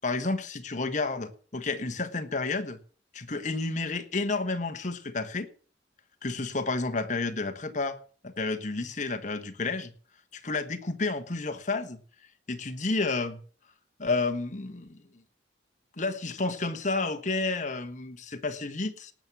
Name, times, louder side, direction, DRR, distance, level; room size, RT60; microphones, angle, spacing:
voice 1, 0.0-2.8 3.1-5.5 6.2-8.0 8.2-9.9 10.3-12.0 12.5-13.4 14.0-15.0 16.0-19.1, left 3 dB, 40° left, 8 dB, 1.3 m, -31 dB
18.0 x 6.2 x 7.1 m, 0.44 s
head